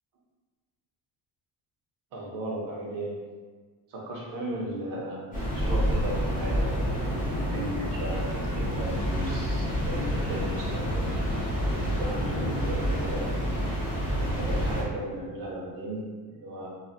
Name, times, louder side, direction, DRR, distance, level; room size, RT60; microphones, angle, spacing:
voice 1, 2.1-3.2 3.9-11.1 12.0-13.4 14.1-16.7, right 1 dB, 65° right, -2 dB, 0.7 m, -36 dB
sound 1, 5.3-14.8, equal, 20° left, 0.8 m, -28 dB
3.2 x 2.2 x 2.6 m, 1.5 s
cardioid pair, 175°, 37 cm